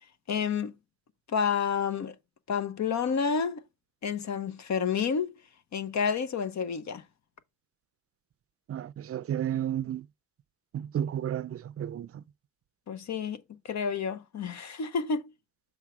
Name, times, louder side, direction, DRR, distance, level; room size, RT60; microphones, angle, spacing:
voice 1, 0.3-0.7 1.3-2.1 2.5-3.6 4.0-5.3 5.7-7.0 12.9-15.3, left 6 dB, 65° left, 0.8 m, -30 dB
voice 2, 8.7-10.0 10.7-12.2, right 10 dB, 50° right, 0.4 m, -32 dB
7.3 x 3.3 x 4.9 m
cardioid pair, 70°, 30 cm